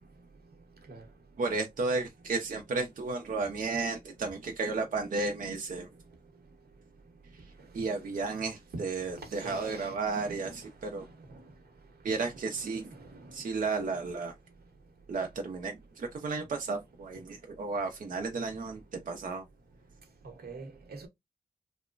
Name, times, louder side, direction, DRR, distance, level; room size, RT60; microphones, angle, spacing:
voice 1, 1.4-5.9 7.7-11.0 12.0-12.9 13.3-14.3 15.1-18.8 19.1-19.4, right 4 dB, 60° right, 0.5 m, -33 dB
voice 2, 9.3-9.9 10.3-10.6 13.1-13.2 20.2-21.1, right 3 dB, 85° right, 0.8 m, -43 dB
2.9 x 2.1 x 2.4 m
wide cardioid pair, 145°, 16 cm